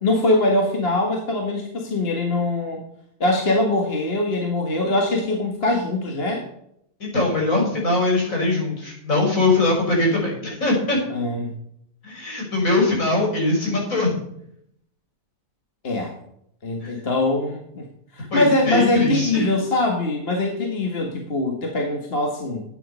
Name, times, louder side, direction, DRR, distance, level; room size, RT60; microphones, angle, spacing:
voice 1, 0.0-2.8 3.2-6.4 11.1-11.6 15.8-16.1 16.6-17.9 18.1-22.6, left 2 dB, 40° left, 1 dB, 1.9 m, -22 dB
voice 2, 7.0-11.0 12.0-14.1 16.8-16.9 18.3-19.5, left 2 dB, 65° left, -2 dB, 6.1 m, -21 dB
12.5 x 9.3 x 5.4 m, 0.72 s
omnidirectional pair, 1.5 m